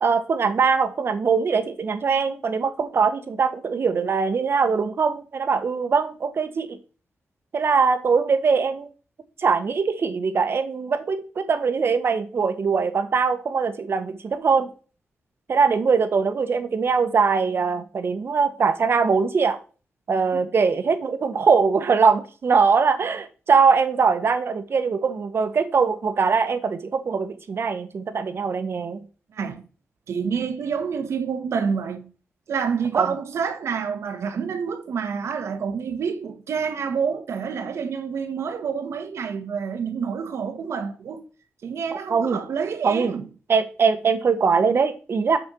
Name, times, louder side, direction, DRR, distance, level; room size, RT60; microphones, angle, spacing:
voice 1, 0.0-6.8 7.5-8.9 9.4-14.7 15.5-19.6 20.1-29.1 32.9-33.1 42.1-42.4 42.8-43.1 43.5-45.4, right 5 dB, 55° right, 1.3 m, -22 dB
voice 2, 29.3-29.6 30.1-32.1 32.5-41.2 41.6-43.2, right 6 dB, 80° right, 1.4 m, -28 dB
6.9 x 5.3 x 6.3 m
cardioid pair, 95°, 5 cm